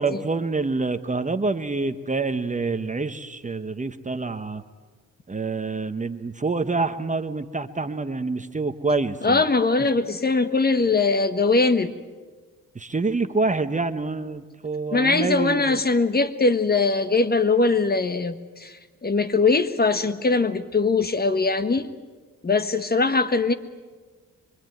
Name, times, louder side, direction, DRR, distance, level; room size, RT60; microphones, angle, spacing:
voice 1, 0.0-4.6 5.3-9.4 12.7-15.8, right 3 dB, 20° right, 9 dB, 1.1 m, -26 dB
voice 2, 9.2-11.9 14.9-21.9 22.4-23.5, left 3 dB, 25° left, 11 dB, 1.4 m, -21 dB
25.0 x 24.5 x 9.2 m, 1.4 s
cardioid pair, 115°, 35 cm